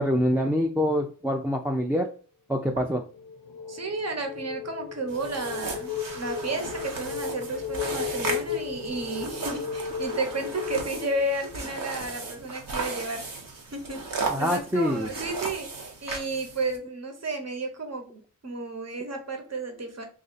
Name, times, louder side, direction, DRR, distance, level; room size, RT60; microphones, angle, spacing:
voice 1, 0.0-2.1 2.5-3.0 14.3-15.1, equal, 5° right, 1 dB, 0.5 m, -25 dB
sound 1, 2.9-11.8, left 8 dB, 90° left, 0.6 m, -35 dB
voice 2, 3.7-13.3 13.7-20.1, right 2 dB, 50° right, 5 dB, 1.1 m, -33 dB
sound 2, 5.1-16.8, right 3 dB, 80° right, 1.1 m, -36 dB
3.2 x 2.7 x 4.0 m, 0.41 s
cardioid pair, 50°, 33 cm